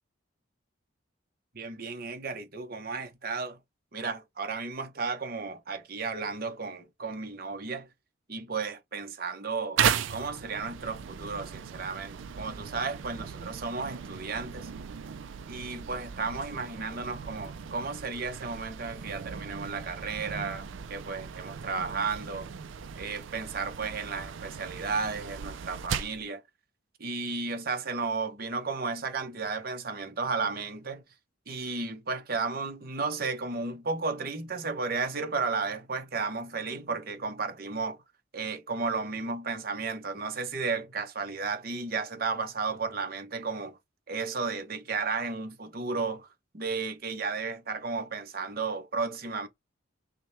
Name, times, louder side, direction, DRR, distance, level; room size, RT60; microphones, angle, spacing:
voice 1, 1.5-3.6 3.9-7.9 8.3-14.7 15.5-22.5 23.0-26.4 27.0-31.0 31.5-38.0 38.3-43.8 44.1-46.3 46.5-49.5, right 4 dB, 45° right, 0.8 m, -33 dB
sound 1, 9.8-26.2, right 7 dB, 65° right, 0.4 m, -36 dB
5.9 x 2.2 x 3.2 m
head